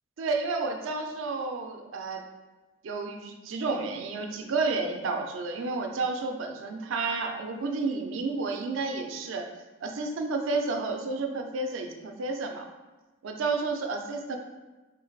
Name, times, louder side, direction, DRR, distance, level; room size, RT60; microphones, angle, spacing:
voice 1, 0.2-2.2 2.8-9.5 9.8-12.7 13.2-14.4, right 3 dB, 75° right, 4 dB, 0.4 m, -31 dB
3.8 x 3.2 x 2.3 m, 1.2 s
head